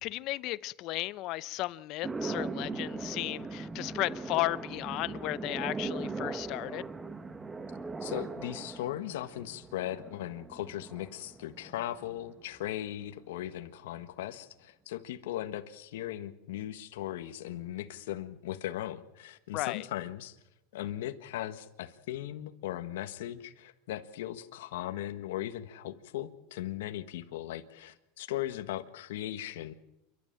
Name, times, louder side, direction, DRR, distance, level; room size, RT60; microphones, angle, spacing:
voice 1, 0.0-6.9 19.5-19.8, left 18 dB, 45° left, 0.7 m, -34 dB
sound 1, 2.0-12.4, right 3 dB, 10° right, 1.0 m, -39 dB
voice 2, 8.0-20.4 20.7-29.7, left 13 dB, 85° left, 1.5 m, -38 dB
28.5 x 12.0 x 8.8 m
supercardioid pair, 145°, 0 cm